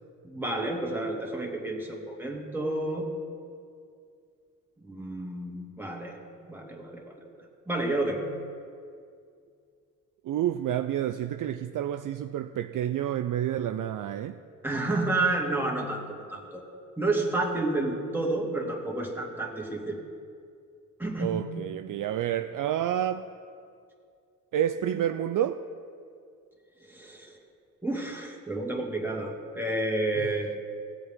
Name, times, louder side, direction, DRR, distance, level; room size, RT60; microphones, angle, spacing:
voice 1, 0.2-3.1 4.8-6.2 6.5-7.1 7.7-8.3 14.6-16.6 17.0-20.0 21.0-21.5 26.8-27.4 27.8-30.6, right 2 dB, 5° right, -1 dB, 2.4 m, -30 dB
voice 2, 10.2-14.4 21.2-23.3 24.5-25.7 30.2-30.3, right 11 dB, 50° right, 9 dB, 0.5 m, -29 dB
16.0 x 7.9 x 3.7 m, 2.3 s
hypercardioid pair, 40°, 41 cm